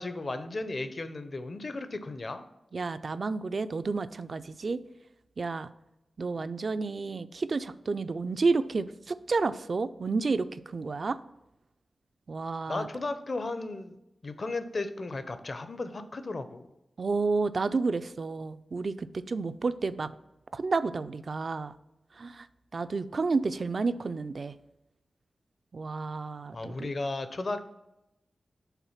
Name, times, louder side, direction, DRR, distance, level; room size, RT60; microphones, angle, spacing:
voice 1, 0.0-2.4 12.7-14.0 14.2-16.7 26.5-27.6, left 2 dB, 45° left, 10 dB, 0.6 m, -35 dB
voice 2, 2.7-4.8 5.4-5.7 6.2-11.2 12.3-12.9 17.0-20.1 20.5-21.7 22.2-22.5 22.7-24.5 25.7-26.9, right 4 dB, 55° right, 13 dB, 0.3 m, -30 dB
5.8 x 3.8 x 5.7 m, 0.90 s
wide cardioid pair, 90°, 0 cm